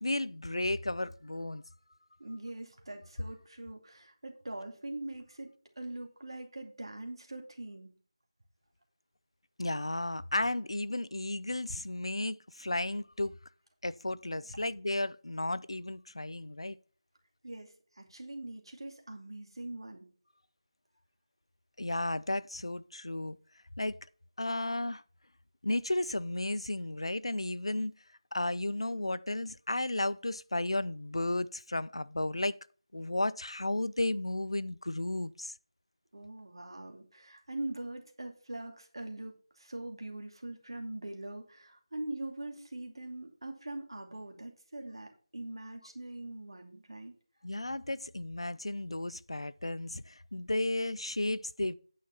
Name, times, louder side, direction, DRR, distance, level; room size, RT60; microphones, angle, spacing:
voice 1, 0.0-1.6 9.6-13.3 13.8-16.8 21.8-23.4 23.8-24.0 24.4-25.0 25.6-27.9 28.3-32.6 32.9-35.5 47.4-51.7, left 2 dB, 70° left, 0.5 m, -33 dB
voice 2, 2.2-7.9 17.4-20.1 36.1-47.1, right 1 dB, 60° right, 2.5 m, -42 dB
9.5 x 5.7 x 5.6 m
figure-of-eight pair, 170°, 3 cm